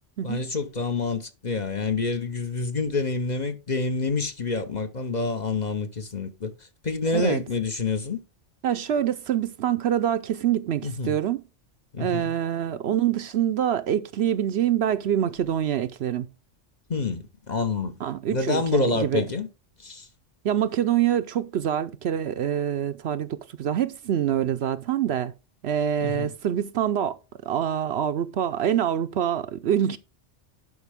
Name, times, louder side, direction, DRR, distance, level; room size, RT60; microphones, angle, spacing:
voice 1, 0.2-8.2 10.8-11.2 11.9-12.3 16.9-18.0 18.3-19.5 19.8-20.1 26.0-26.3, left 3 dB, 40° left, 1.0 m, -27 dB
voice 2, 8.6-11.4 12.0-16.3 18.0-19.3 20.4-25.3 25.6-27.2 27.4-30.0, right 10 dB, 65° right, 0.8 m, -25 dB
11.0 x 5.4 x 3.5 m
omnidirectional pair, 1.2 m